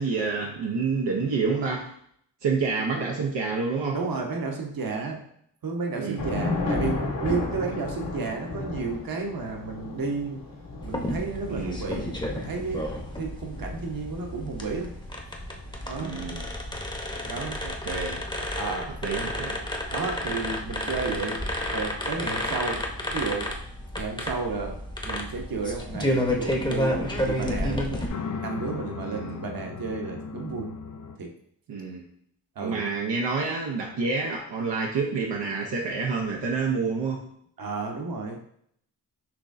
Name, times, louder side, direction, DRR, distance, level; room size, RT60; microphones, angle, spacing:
voice 1, 0.0-1.9 2.4-4.0 6.0-6.5 11.5-11.8 16.0-16.5 17.6-18.2 19.0-19.6 29.0-29.4 31.7-32.0 32.6-37.2, right 4 dB, 80° right, -1 dB, 0.8 m, -28 dB
voice 2, 3.9-5.2 5.6-10.5 10.8-12.8 13.2-14.9 15.8-16.2 17.2-17.6 18.6-18.9 19.9-21.4 21.7-22.8 23.1-23.5 23.9-28.0 28.3-30.7 31.2-31.3 32.6-32.8 37.6-38.4, right 4 dB, 55° right, 2 dB, 1.0 m, -32 dB
Thunder / Rain, 6.2-18.7, left 3 dB, 70° left, 1.7 m, -35 dB
sound 1, 10.8-28.1, left 1 dB, 10° left, 0.8 m, -31 dB
sound 2, 27.5-31.2, left 6 dB, 45° left, 0.5 m, -37 dB
6.0 x 3.1 x 2.6 m, 0.68 s
cardioid pair, 55°, 43 cm